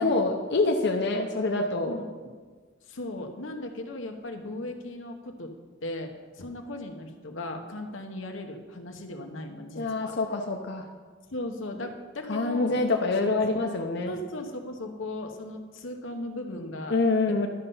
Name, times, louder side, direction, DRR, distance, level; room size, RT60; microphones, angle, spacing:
voice 1, 0.0-2.0 9.7-10.8 12.3-14.1 16.9-17.5, left 3 dB, 60° left, 2 dB, 0.7 m, -26 dB
voice 2, 2.9-5.5 5.8-10.1 11.3-12.8 13.2-13.4 14.1-16.9 17.3-17.5, left 1 dB, 90° left, 4 dB, 1.1 m, -37 dB
12.0 x 5.6 x 5.5 m, 1.5 s
head